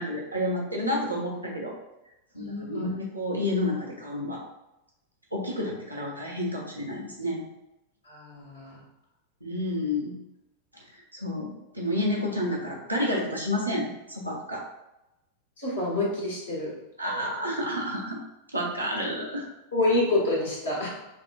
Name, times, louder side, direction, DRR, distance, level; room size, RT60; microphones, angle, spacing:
voice 1, 0.0-1.7 2.3-4.4 5.3-7.4 9.4-10.2 11.1-14.6 17.0-18.2 18.5-19.4, left 1 dB, 85° right, -2 dB, 0.8 m, -30 dB
voice 2, 2.3-2.9 8.1-8.8 15.6-16.7 19.7-20.9, left 2 dB, 65° left, -5 dB, 1.4 m, -27 dB
5.1 x 2.2 x 2.5 m, 0.92 s
figure-of-eight pair, 90°, 0 cm